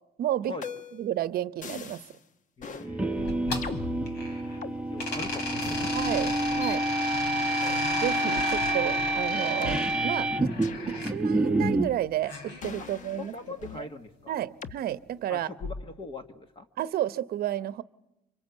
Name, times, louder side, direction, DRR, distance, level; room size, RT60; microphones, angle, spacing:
voice 1, 0.2-0.6 0.9-2.0 5.9-6.3 6.6-6.8 8.0-10.5 10.9-13.3 13.7-13.9 14.3-15.5 16.8-17.8, right 12 dB, 65° right, 15 dB, 0.8 m, -31 dB
sound 1, 0.6-1.1 1.6-2.2 2.6-2.9 3.6-4.8 5.6-5.8 6.6-6.8 7.6-8.0 8.6-8.7 9.6-9.8 10.6-10.9 11.6-12.2 12.6-13.9 14.6-14.8 15.6-16.0, left 6 dB, 50° left, 1.1 m, -40 dB
voice 2, 2.6-3.3 4.3-5.9 6.2-6.3 7.3-7.5 12.8-12.9 13.2-14.4 15.3-16.7, left 3 dB, 30° left, 7 dB, 1.5 m, -41 dB
sound 2, 2.8-11.9, right 2 dB, 5° right, 1.0 m, -28 dB
sound 3, 3.2-4.6 5.0-11.1 12.2-13.4, left 3 dB, 90° left, 4.0 m, -36 dB
25.5 x 24.5 x 8.1 m, 0.93 s
cardioid pair, 110°, 17 cm